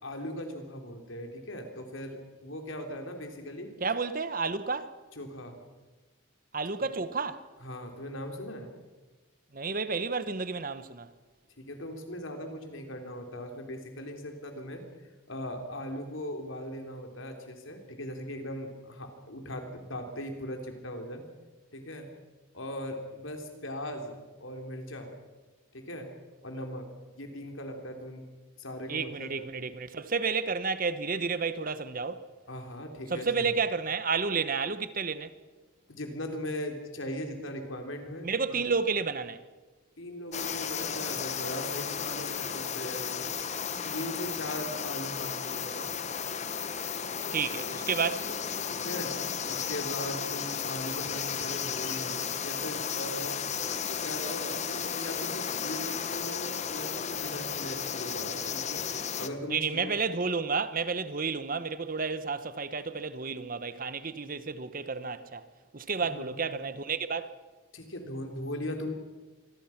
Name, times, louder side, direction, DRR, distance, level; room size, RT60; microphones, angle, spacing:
voice 1, 0.0-3.7 5.2-5.6 7.6-8.7 11.6-14.8 15.3-21.2 21.7-22.1 22.5-25.1 25.7-26.1 26.4-28.2 28.6-29.3 32.5-33.3 35.9-38.6 40.0-43.3 43.8-45.9 48.7-49.2 49.5-53.3 53.8-59.9 66.0-66.4 67.7-68.9, left 1 dB, 70° left, 3.7 m, -39 dB
voice 2, 3.8-4.9 6.5-7.4 9.5-11.1 28.9-32.3 33.1-35.3 38.2-39.4 47.3-48.3 59.5-65.4 65.7-67.3, right 5 dB, 40° right, 1.0 m, -31 dB
sound 1, 40.3-59.3, left 7 dB, 35° left, 1.0 m, -34 dB
26.0 x 21.0 x 5.9 m
head